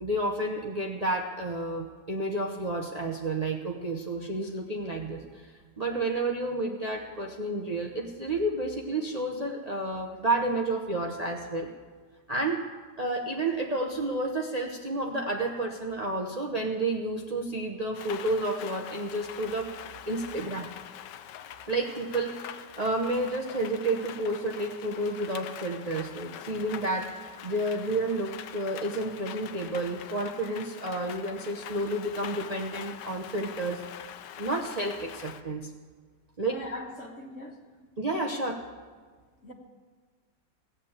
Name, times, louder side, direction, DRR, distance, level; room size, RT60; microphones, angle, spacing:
voice 1, 0.0-11.7 12.3-12.6 13.0-19.7 20.1-20.7 21.7-33.8 34.4-35.7 36.4-36.6 38.0-38.6, right 2 dB, 30° right, 1 dB, 0.7 m, -31 dB
Rain, 17.9-35.4, left 10 dB, 85° left, 1.3 m, -44 dB
voice 2, 36.4-37.6 39.4-39.5, left 2 dB, 45° left, 1 dB, 1.7 m, -40 dB
16.5 x 8.3 x 7.3 m, 1.5 s
omnidirectional pair, 1.9 m